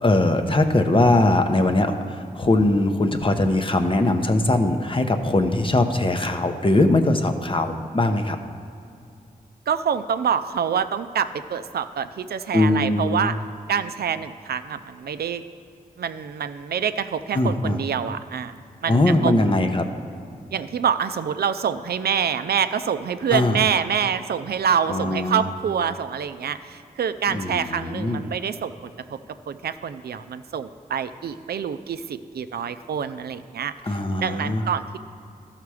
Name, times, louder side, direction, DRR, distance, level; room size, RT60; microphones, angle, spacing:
voice 1, 0.0-8.4 12.5-13.3 17.3-17.8 18.9-19.9 23.3-23.6 24.9-25.5 27.3-28.2 33.8-34.7, left 2 dB, 35° left, 6 dB, 0.7 m, -21 dB
voice 2, 9.7-13.3 13.7-15.4 16.0-18.6 18.8-19.3 20.5-29.2 29.5-33.7 34.2-35.0, right 7 dB, 90° right, 11 dB, 0.4 m, -26 dB
13.0 x 5.8 x 4.8 m, 2.5 s
wide cardioid pair, 65°, 16 cm